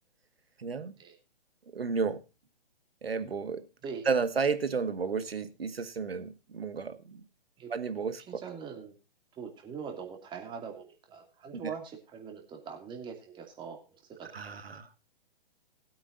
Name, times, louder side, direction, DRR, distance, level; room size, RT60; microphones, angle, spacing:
voice 1, 0.6-0.9 1.7-2.2 3.0-3.6 4.1-7.2 7.7-8.4 14.3-14.9, right 5 dB, 75° right, 11 dB, 1.8 m, -32 dB
voice 2, 8.3-8.9 9.4-14.6, right 6 dB, 15° right, 4 dB, 2.8 m, -42 dB
20.0 x 8.8 x 2.6 m, 0.31 s
figure-of-eight pair, 130°, 30 cm